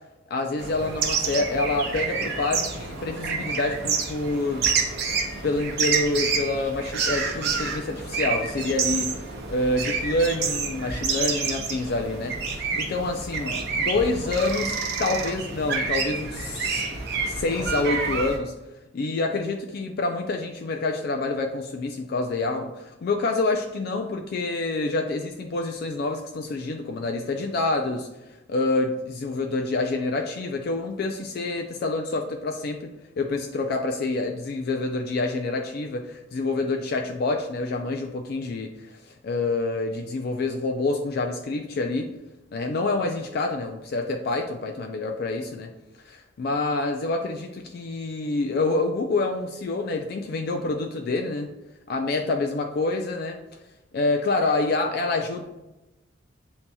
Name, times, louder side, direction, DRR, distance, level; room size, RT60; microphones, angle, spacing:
voice 1, 0.3-5.1 5.4-9.2 9.5-16.8 17.2-18.5 18.9-28.1 28.5-32.9 33.2-42.1 42.5-45.7 46.0-51.5 51.9-53.4 53.9-55.4, left 2 dB, 55° left, 4 dB, 0.3 m, -27 dB
sound 1, 0.6-18.4, right 5 dB, 60° right, 0.7 m, -28 dB
7.3 x 2.7 x 2.2 m, 1.0 s
head